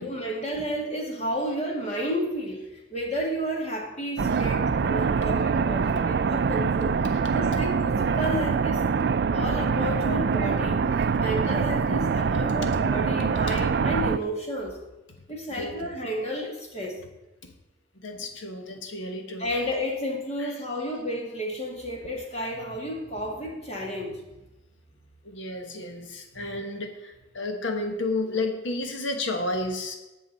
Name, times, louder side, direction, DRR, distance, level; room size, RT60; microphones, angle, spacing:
voice 1, 0.0-8.9 9.3-14.8 15.3-17.0 19.4-24.2 26.3-26.4, equal, 35° left, 0 dB, 2.1 m, -32 dB
sound 1, 4.2-14.2, right 5 dB, 60° right, 0.4 m, -24 dB
voice 2, 18.0-19.4 20.4-20.5 25.2-30.0, left 2 dB, 85° left, 4 dB, 1.3 m, -31 dB
19.0 x 6.3 x 4.1 m, 1.1 s
head